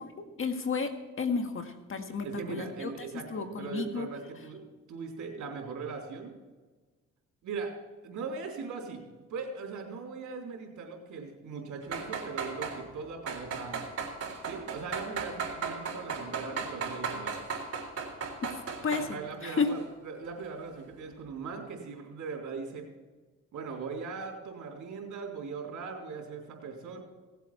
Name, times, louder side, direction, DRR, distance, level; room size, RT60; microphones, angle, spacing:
voice 1, 0.4-0.9 1.2-2.9 3.3-4.1 18.4-18.5 18.8-19.1 19.4-19.7, left 5 dB, 45° left, 6 dB, 1.7 m, -31 dB
voice 2, 2.2-4.6 4.9-6.3 7.4-7.7 8.0-9.0 9.3-13.9 14.4-17.3 18.9-22.9 23.5-27.0, right 4 dB, 75° right, 0 dB, 3.7 m, -39 dB
sound 1, 11.8-12.8 13.3-19.1 19.5-19.8 20.2-20.3, right 5 dB, 50° right, 3.8 m, -35 dB
17.5 x 8.2 x 4.4 m, 1.3 s
cardioid pair, 90°, 30 cm